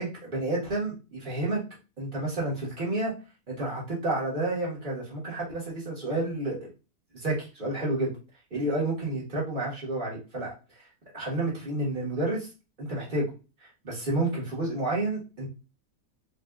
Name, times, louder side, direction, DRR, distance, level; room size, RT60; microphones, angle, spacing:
voice 1, 0.0-1.6 2.0-3.1 3.5-6.7 7.1-8.1 8.5-10.9 11.1-12.5 12.8-13.3 13.8-15.5, right 2 dB, 35° right, -5 dB, 1.4 m, -30 dB
4.1 x 2.3 x 2.3 m, 0.31 s
omnidirectional pair, 1.5 m